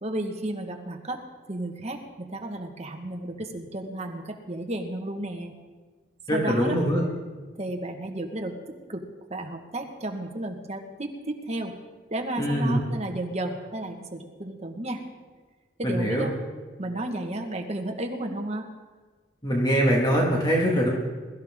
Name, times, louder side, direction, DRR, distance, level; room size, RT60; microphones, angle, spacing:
voice 1, 0.0-1.2 1.5-5.5 6.3-6.8 7.6-8.6 8.9-11.7 12.1-15.0 15.8-16.3 16.8-18.7, right 1 dB, 35° right, 3 dB, 1.5 m, -33 dB
voice 2, 6.3-7.0 12.4-12.8 15.8-16.3 19.4-20.9, equal, 25° left, -2 dB, 1.9 m, -23 dB
22.0 x 13.5 x 3.7 m, 1.4 s
head